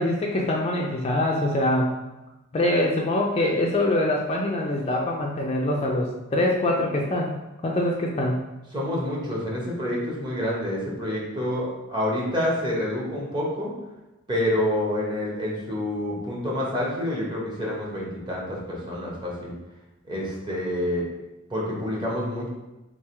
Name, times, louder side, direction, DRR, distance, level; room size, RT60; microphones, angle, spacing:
voice 1, 0.0-1.9 2.5-8.4, left 1 dB, 30° left, -1 dB, 0.4 m, -24 dB
voice 2, 8.7-13.7 14.3-19.5 20.1-21.0 21.5-22.5, left 1 dB, 20° right, -5 dB, 1.0 m, -28 dB
3.6 x 2.4 x 4.3 m, 1.0 s
head